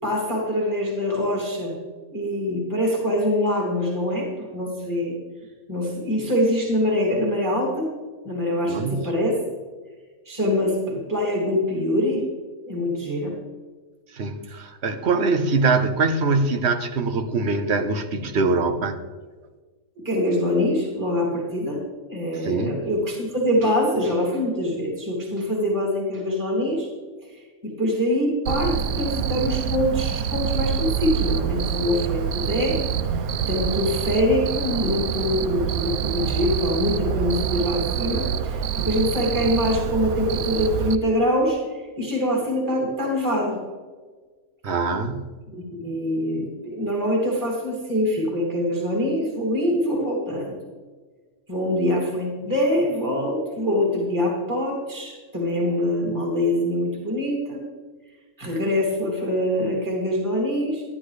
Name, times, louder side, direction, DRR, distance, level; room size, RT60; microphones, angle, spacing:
voice 1, 0.0-1.8 2.1-5.2 5.7-7.9 8.2-9.4 10.3-12.2 12.6-13.4 20.0-21.8 22.1-26.9 27.2-32.8 33.1-43.6 44.7-44.8 45.5-50.6 51.5-57.6 58.4-60.8, left 1 dB, 15° right, -2 dB, 2.6 m, -24 dB
voice 2, 8.7-9.1 14.1-19.0 22.4-22.9 44.6-45.3, right 3 dB, 55° right, 8 dB, 1.1 m, -23 dB
Cricket, 28.5-41.0, right 8 dB, 85° right, 1.1 m, -26 dB
12.5 x 12.0 x 3.3 m, 1.4 s
omnidirectional pair, 1.5 m